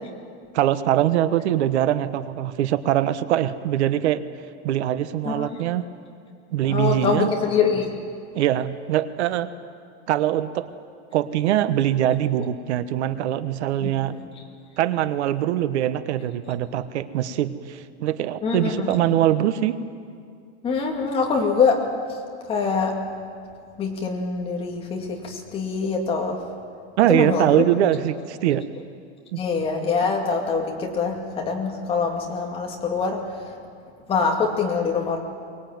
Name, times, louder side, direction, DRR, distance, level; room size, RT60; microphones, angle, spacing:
voice 1, 0.5-4.2 4.6-5.8 6.5-7.3 8.3-9.5 10.1-10.7 11.1-14.1 14.8-19.8 27.0-28.6 29.3-29.4, right 12 dB, 75° right, 13 dB, 1.3 m, -22 dB
voice 2, 6.6-7.9 13.8-14.2 18.4-18.9 20.6-21.8 22.5-23.0 23.8-26.4 27.1-27.6 29.4-33.5 34.1-35.2, left 5 dB, 15° left, 0 dB, 2.4 m, -24 dB
23.5 x 20.0 x 9.5 m, 2.3 s
supercardioid pair, 175°, 34 cm